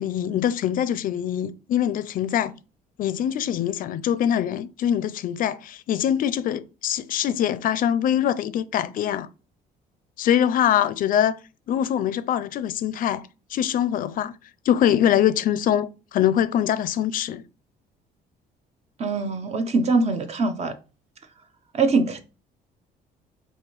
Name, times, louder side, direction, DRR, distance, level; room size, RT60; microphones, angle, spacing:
voice 1, 0.0-2.5 3.0-9.3 10.2-11.4 11.7-13.2 13.5-14.3 14.7-17.4, left 10 dB, 55° left, 0.4 m, -23 dB
voice 2, 19.0-20.7 21.7-22.2, right 3 dB, 40° right, 0.7 m, -23 dB
4.6 x 2.7 x 3.0 m
cardioid pair, 110°, 17 cm